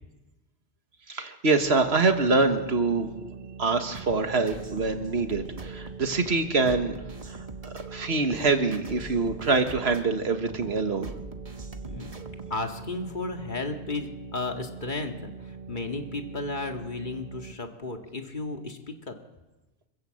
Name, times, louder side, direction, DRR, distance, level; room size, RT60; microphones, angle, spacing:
voice 1, 1.1-3.1 3.6-7.0 7.3-11.1, right 3 dB, 65° right, 6 dB, 1.9 m, -25 dB
sound 1, 1.6-17.5, right 6 dB, 85° right, 1.7 m, -43 dB
sound 2, 3.9-12.6, right 2 dB, 35° right, 1.3 m, -43 dB
voice 2, 12.5-18.8 19.1-19.2, left 3 dB, 45° left, 3 dB, 2.2 m, -34 dB
26.5 x 15.5 x 7.8 m, 1.1 s
omnidirectional pair, 1.2 m